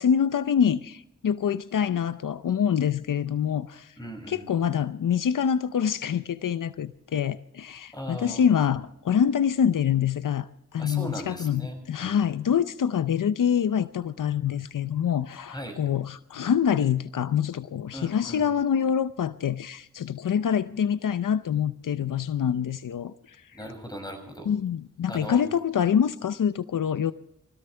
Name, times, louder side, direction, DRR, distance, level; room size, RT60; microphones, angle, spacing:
voice 1, 0.0-3.9 4.3-11.6 11.9-23.6 24.5-27.1, left 8 dB, 85° left, 0.6 m, -25 dB
voice 2, 4.0-4.5 7.9-8.4 10.8-12.2 15.5-15.8 17.9-18.5 23.5-24.5 25.1-25.4, equal, 15° left, 6.7 m, -38 dB
24.5 x 17.0 x 3.4 m
cardioid pair, 50°, 31 cm